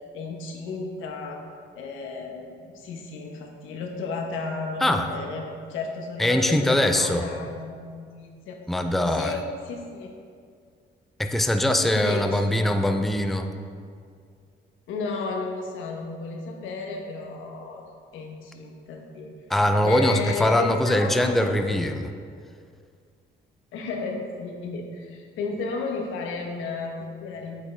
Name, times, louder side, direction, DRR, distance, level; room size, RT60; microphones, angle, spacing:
voice 1, 0.1-1.4 1.8-8.6 9.1-10.1 11.9-12.7 14.9-17.9 18.1-19.3 19.8-21.4 23.7-27.7, left 3 dB, 90° left, 1 dB, 1.1 m, -33 dB
voice 2, 6.2-7.3 8.7-9.4 11.2-13.5 19.5-22.1, left 1 dB, ahead, 6 dB, 0.5 m, -22 dB
8.2 x 7.0 x 3.4 m, 2.2 s
cardioid pair, 90°, 20 cm